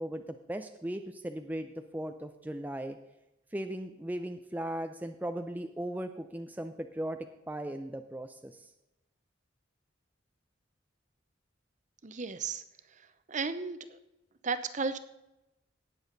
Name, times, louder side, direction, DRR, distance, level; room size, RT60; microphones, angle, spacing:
voice 1, 0.0-3.0 3.5-8.7, right 1 dB, 10° right, 6 dB, 0.5 m, -38 dB
voice 2, 12.0-12.6 13.3-13.8 14.4-15.0, right 4 dB, 40° right, 11 dB, 0.8 m, -33 dB
18.0 x 7.1 x 4.0 m, 0.94 s
head